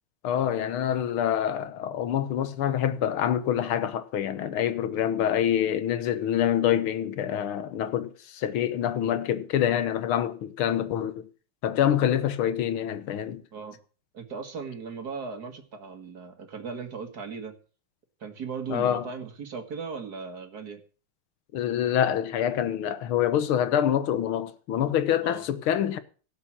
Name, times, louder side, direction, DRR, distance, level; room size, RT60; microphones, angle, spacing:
voice 1, 0.2-11.3 11.6-13.4 18.7-19.1 21.5-26.0, left 10 dB, 85° left, 1.8 m, -26 dB
voice 2, 14.1-17.5 18.2-20.8 25.2-25.5, right 5 dB, 50° right, 2.1 m, -37 dB
17.0 x 5.8 x 7.4 m
omnidirectional pair, 2.3 m